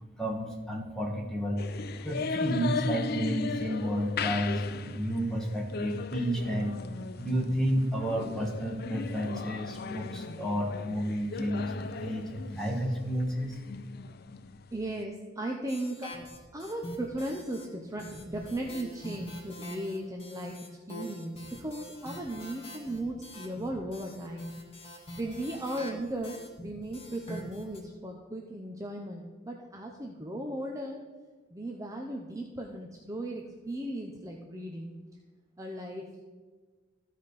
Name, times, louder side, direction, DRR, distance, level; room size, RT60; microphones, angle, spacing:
voice 1, 0.2-1.7 2.0-6.8 7.2-13.5, equal, 5° left, -2 dB, 1.6 m, -31 dB
sound 1, 1.6-15.0, left 4 dB, 55° left, 0.4 m, -37 dB
voice 2, 14.7-16.1 16.5-24.5 25.2-31.0 31.5-34.9 35.6-36.2, right 1 dB, 15° right, 1 dB, 0.7 m, -37 dB
sound 2, 15.7-17.7 18.0-27.8, equal, 30° left, 1.8 m, -45 dB
14.0 x 5.1 x 4.1 m, 1.4 s
head